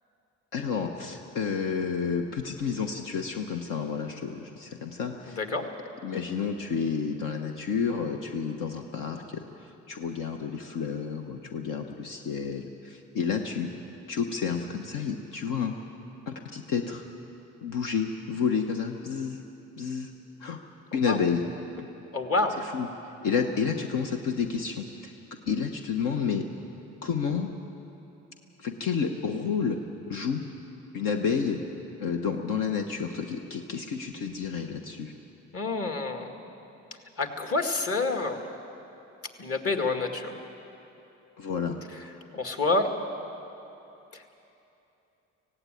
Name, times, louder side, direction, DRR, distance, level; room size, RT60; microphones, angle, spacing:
voice 1, 0.5-5.7 6.0-9.4 9.9-13.7 14.1-15.7 16.3-17.0 17.6-19.4 19.8-20.1 20.4-20.6 20.9-21.4 21.8-21.9 22.6-22.9 23.2-25.1 25.5-26.4 27.0-27.5 28.6-29.8 30.1-30.4 30.9-31.6 32.0-35.1 41.4-41.8, left 6 dB, 80° left, 4 dB, 1.1 m, -30 dB
voice 2, 22.1-22.5 35.5-36.3 37.2-38.4 39.4-40.4 42.3-42.9, left 3 dB, 45° left, 5 dB, 2.1 m, -27 dB
18.0 x 16.5 x 9.2 m, 3.0 s
supercardioid pair, 80°, 32 cm